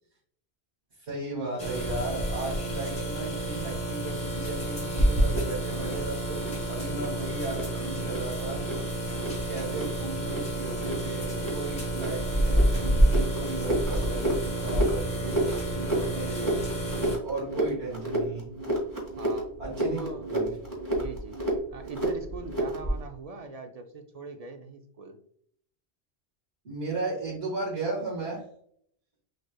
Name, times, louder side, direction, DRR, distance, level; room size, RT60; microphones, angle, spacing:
voice 1, 1.0-6.4 6.7-8.6 9.3-16.7 17.2-18.5 19.6-20.0 20.3-20.5 26.6-28.4, right 3 dB, 80° right, -8 dB, 1.9 m, -35 dB
sound 1, 1.6-17.2, right 1 dB, 35° left, 1.6 m, -32 dB
sound 2, 5.0-23.0, right 1 dB, 20° right, 1.4 m, -29 dB
voice 2, 19.2-19.5 19.8-20.3 21.0-21.4 21.7-25.2, right 3 dB, 50° right, 6 dB, 0.5 m, -41 dB
6.4 x 3.1 x 2.2 m, 0.64 s
omnidirectional pair, 1.1 m